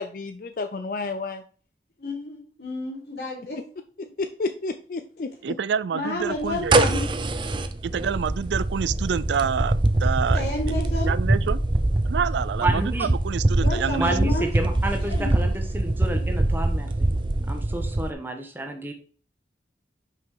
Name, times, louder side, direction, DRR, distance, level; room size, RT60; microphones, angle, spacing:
voice 1, 0.0-1.4 4.0-5.3, left 3 dB, 50° left, 0.4 m, -31 dB
voice 2, 2.0-3.6 5.9-7.1 10.3-11.1 12.1-12.4 13.6-14.5 15.0-15.3, left 1 dB, 75° left, 3.2 m, -31 dB
voice 3, 5.4-6.9 7.8-10.4 11.0-11.6 12.1-14.1, right 7 dB, 85° right, 0.4 m, -27 dB
sound 1, 6.4-18.1, right 2 dB, 25° right, 0.5 m, -24 dB
voice 4, 12.6-13.1 14.0-17.1 17.5-18.9, right 1 dB, 10° right, 1.1 m, -30 dB
5.6 x 5.0 x 4.9 m
head